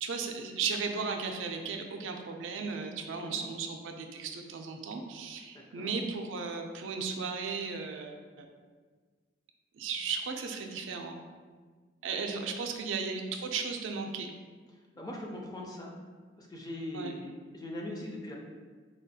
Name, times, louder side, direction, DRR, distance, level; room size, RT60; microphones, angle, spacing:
voice 1, 0.0-8.5 9.7-11.2 12.0-14.3 16.9-17.1, right 5 dB, 90° right, 4 dB, 0.4 m, -35 dB
voice 2, 3.0-3.4 5.5-5.9 12.7-12.8 15.0-15.9 16.4-18.4, left 1 dB, 20° left, -1 dB, 0.4 m, -41 dB
4.2 x 2.2 x 2.7 m, 1.5 s
head